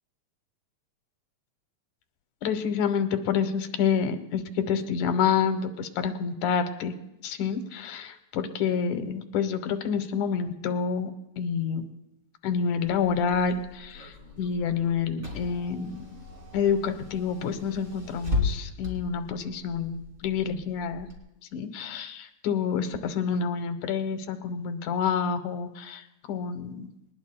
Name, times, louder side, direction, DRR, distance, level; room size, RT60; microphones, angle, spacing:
voice 1, 2.4-6.9 7.2-11.1 11.4-11.9 12.4-16.0 16.5-21.1 21.5-26.9, left 6 dB, 85° left, 8 dB, 2.4 m, -28 dB
Car / Engine, 12.8-21.2, left 3 dB, 20° right, 2.7 m, -36 dB
21.0 x 19.5 x 2.2 m, 0.88 s
omnidirectional pair, 3.4 m